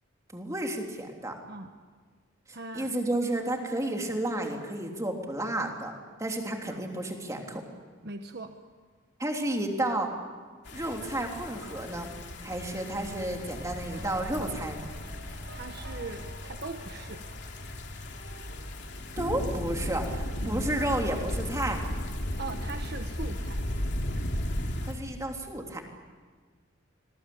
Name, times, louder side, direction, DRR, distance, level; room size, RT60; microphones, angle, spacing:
voice 1, 0.3-1.3 2.7-5.9 6.2-7.6 9.2-10.1 10.7-12.1 12.4-14.9 19.2-21.8 24.9-25.8, right 1 dB, 15° right, 2 dB, 3.2 m, -31 dB
voice 2, 2.5-2.9 6.3-6.4 6.7-6.8 8.0-8.5 15.5-17.2 20.4-20.7 22.4-23.6, right 3 dB, 55° right, 6 dB, 1.2 m, -40 dB
sound 1, 10.7-24.9, left 1 dB, 60° left, 3.0 m, -35 dB
sound 2, 13.9-18.2, right 2 dB, 75° right, 6.1 m, -51 dB
27.0 x 21.5 x 8.6 m, 1.5 s
head